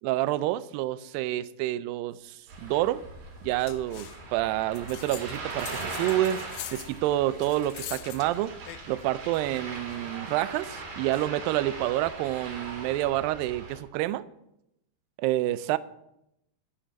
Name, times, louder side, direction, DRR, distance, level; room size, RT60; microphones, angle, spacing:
voice 1, 0.0-3.0 3.4-6.4 6.7-8.5 8.9-14.2 15.2-15.8, right 14 dB, 80° right, 16 dB, 2.1 m, -28 dB
Ocean, 2.5-13.8, right 3 dB, 60° right, 4.5 m, -40 dB
sound 1, 3.6-4.2 4.7-9.1 9.5-11.3, left 15 dB, 85° left, 2.5 m, -44 dB
13.0 x 5.5 x 9.2 m, 0.83 s
omnidirectional pair, 4.5 m